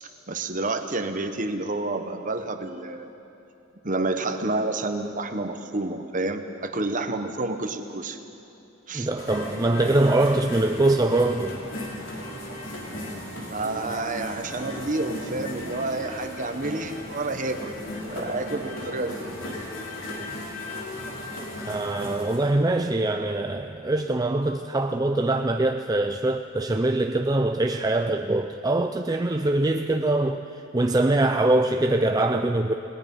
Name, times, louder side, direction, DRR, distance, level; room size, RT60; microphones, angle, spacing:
voice 1, 0.0-3.1 3.8-8.2 8.9-9.1 13.5-17.7 18.1-19.3, right 2 dB, 40° right, 7 dB, 1.3 m, -29 dB
voice 2, 8.9-11.6 20.4-20.6 21.6-30.4 30.7-32.7, right 2 dB, 20° right, 5 dB, 0.5 m, -23 dB
sound 1, 9.2-22.5, left 1 dB, 70° left, 4.5 m, -36 dB
30.0 x 19.5 x 5.6 m, 2.8 s
head